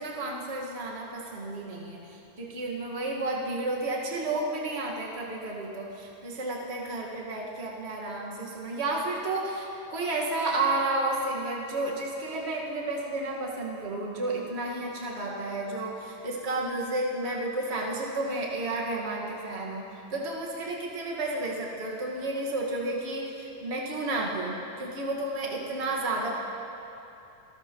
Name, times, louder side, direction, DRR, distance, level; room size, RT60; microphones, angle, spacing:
voice 1, 0.0-19.8 20.1-26.4, right 2 dB, 55° right, -3 dB, 0.7 m, -32 dB
27.5 x 13.0 x 3.0 m, 2.9 s
omnidirectional pair, 4.0 m